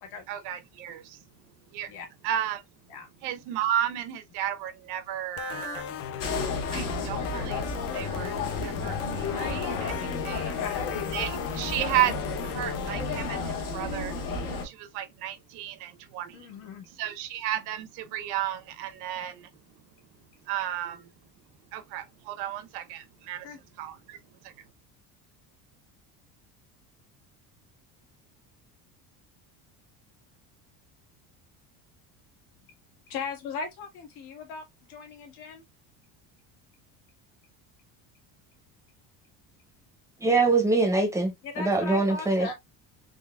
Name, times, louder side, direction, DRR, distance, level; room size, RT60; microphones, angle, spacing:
voice 1, 0.3-1.0 1.7-1.9 2.2-2.6 3.2-5.8 6.7-7.6 7.9-8.3 8.6-9.0 9.4-9.9 10.2-10.5 11.1-12.1 12.5-14.1 14.9-16.3 17.0-19.3 20.5-21.0 21.7-23.4 23.8-23.9, right 12 dB, 75° right, 0.8 m, -32 dB
sound 1, 5.4-13.4, left 8 dB, 40° left, 0.4 m, -37 dB
sound 2, 6.2-14.7, left 4 dB, 55° left, 1.2 m, -32 dB
voice 2, 10.4-10.8 16.3-16.9 23.4-23.6 33.1-35.6 41.4-42.5, left 4 dB, 80° left, 1.6 m, -38 dB
voice 3, 40.2-42.5, right 3 dB, 10° right, 0.6 m, -23 dB
3.8 x 3.1 x 2.2 m
cardioid pair, 170°, 39 cm